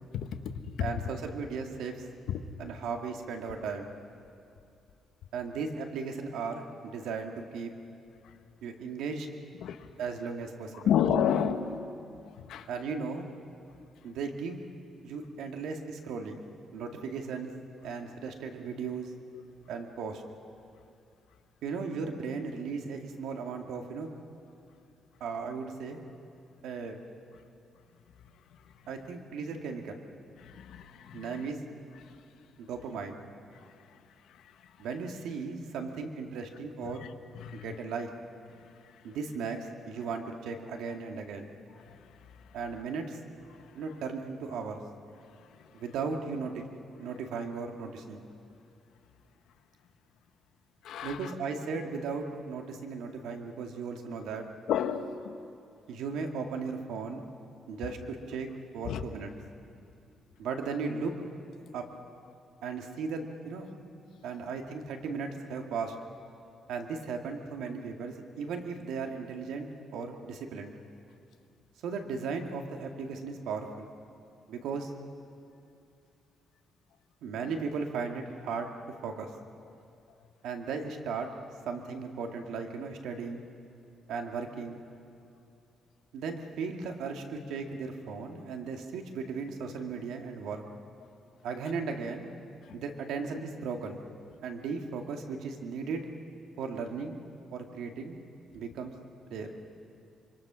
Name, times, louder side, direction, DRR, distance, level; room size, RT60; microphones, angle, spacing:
voice 1, 0.1-0.9 2.3-2.4 8.2-8.3 9.6-9.9 10.7-11.8 12.2-12.7 30.3-31.5 32.0-32.2 33.5-34.0 34.3-34.7 36.8-36.9 37.3-37.7 38.5-39.0 41.9-42.4 43.5-43.7 45.2-45.7 50.8-51.3 54.7-55.4 58.8-59.0 91.0-91.1 92.6-92.8, left 9 dB, 75° left, 8 dB, 1.2 m, -33 dB
voice 2, 0.8-2.1 2.6-3.9 5.3-7.7 8.6-9.3 10.0-10.9 12.7-13.3 14.0-14.7 15.0-16.5 16.7-17.5 17.8-19.1 19.7-20.2 21.6-24.1 25.2-26.0 26.6-27.0 28.9-30.0 31.1-31.6 32.6-33.2 34.8-37.1 37.5-38.1 39.0-41.5 42.5-43.2 43.7-44.8 45.7-48.2 51.0-54.5 55.9-57.2 57.7-58.5 58.7-59.3 60.4-61.1 61.7-61.8 62.6-63.7 64.2-66.0 66.7-70.7 71.8-73.9 74.5-74.9 77.2-78.7 79.0-79.3 80.4-81.3 81.7-83.4 84.1-84.8 86.1-90.6 91.4-92.3 92.7-94.0 94.4-96.1 96.6-97.2 97.5-98.2 98.5-98.9 99.3-99.5, right 5 dB, 90° right, 3 dB, 2.2 m, -36 dB
26.0 x 24.5 x 6.3 m, 2.5 s
cardioid pair, 150°, 0 cm